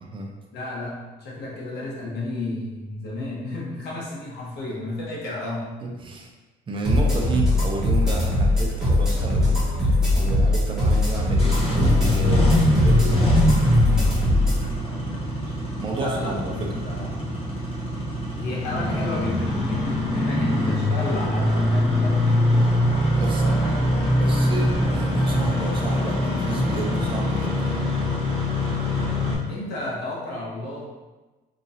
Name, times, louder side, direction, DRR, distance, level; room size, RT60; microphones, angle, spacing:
voice 1, 0.0-0.4 5.8-6.3 6.7-13.3 15.5-16.7 23.1-23.6 24.1-27.8, right 3 dB, 30° right, 0 dB, 0.6 m, -32 dB
voice 2, 0.5-5.7 14.6-15.3 15.9-17.3 18.3-22.3 23.2-23.9 29.5-30.9, left 2 dB, 75° left, -4 dB, 1.1 m, -32 dB
sound 1, 6.8-14.6, left 1 dB, 5° right, 1.4 m, -21 dB
Engine starting, 11.2-29.3, left 1 dB, 35° left, 1.2 m, -23 dB
3.7 x 3.0 x 2.7 m, 1.2 s
cardioid pair, 110°, 17 cm